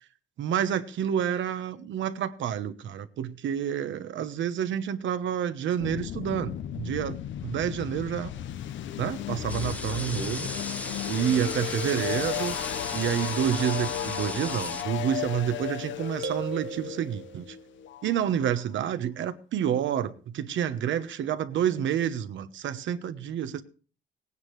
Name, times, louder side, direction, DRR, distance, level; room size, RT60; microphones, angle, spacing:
voice 1, 0.4-7.2 7.4-8.3 9.0-10.5 11.1-12.5 12.9-17.6 18.0-23.6, right 9 dB, 70° right, 1.0 m, -29 dB
sound 1, 5.8-18.6, left 11 dB, 70° left, 0.7 m, -35 dB
sound 2, 9.5-14.8, left 1 dB, 5° left, 0.8 m, -37 dB
sound 3, 16.2-17.8, right 5 dB, 90° right, 1.3 m, -38 dB
18.0 x 9.6 x 3.2 m
cardioid pair, 90°, 20 cm